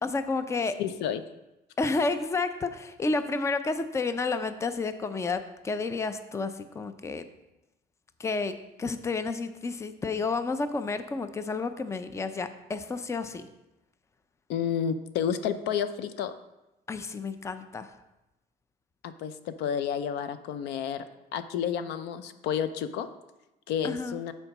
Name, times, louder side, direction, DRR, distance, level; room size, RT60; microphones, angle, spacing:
voice 1, 0.0-0.7 1.8-7.3 8.2-13.5 16.9-17.9 23.8-24.2, left 3 dB, 15° left, 10 dB, 0.5 m, -31 dB
voice 2, 0.8-1.2 14.5-16.3 19.0-21.0 21.3-23.1 23.7-24.3, left 8 dB, 80° left, 11 dB, 0.6 m, -30 dB
6.9 x 4.5 x 5.9 m, 0.96 s
cardioid pair, 110°, 17 cm